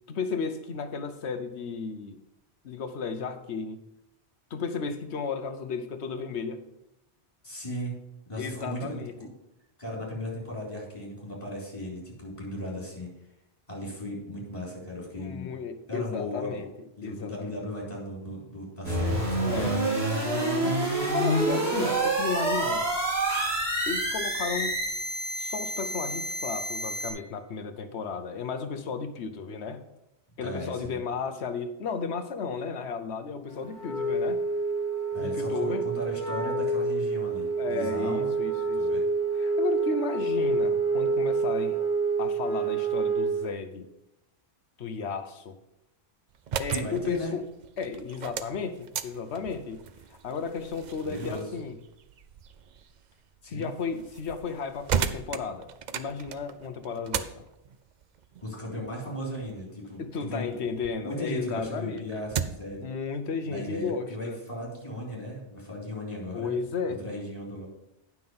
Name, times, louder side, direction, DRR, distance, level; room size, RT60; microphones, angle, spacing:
voice 1, 0.1-2.2 2.6-3.8 4.5-6.6 8.4-9.1 15.2-16.7 17.0-17.6 19.4-19.8 20.2-22.9 23.9-24.8 25.4-29.8 30.4-34.4 35.2-35.8 37.6-39.0 39.4-41.8 42.2-43.9 44.8-45.6 46.6-47.4 47.8-49.8 50.2-51.8 53.5-55.7 55.9-57.4 60.0-62.2 62.8-64.4 66.3-67.0, left 5 dB, 85° left, 8 dB, 1.2 m, -34 dB
voice 2, 7.4-7.9 8.3-9.3 9.8-13.1 13.7-15.5 15.9-16.7 17.0-19.9 30.4-31.0 35.1-38.3 38.7-39.0 46.7-47.4 51.0-51.5 53.4-53.7 58.4-60.0 60.3-60.6 60.9-62.9 63.4-66.5 67.0-67.7, left 1 dB, 30° left, -3 dB, 3.3 m, -36 dB
sound 1, 18.8-27.1, right 1 dB, 70° right, 3.0 m, -27 dB
Wind instrument woodwind instrument, 33.7-43.5, right 3 dB, 50° left, 1.6 m, -27 dB
sound 2, 46.3-61.0 61.4-62.8, right 7 dB, 55° right, 0.6 m, -37 dB
9.6 x 6.0 x 5.4 m, 0.89 s
omnidirectional pair, 1.1 m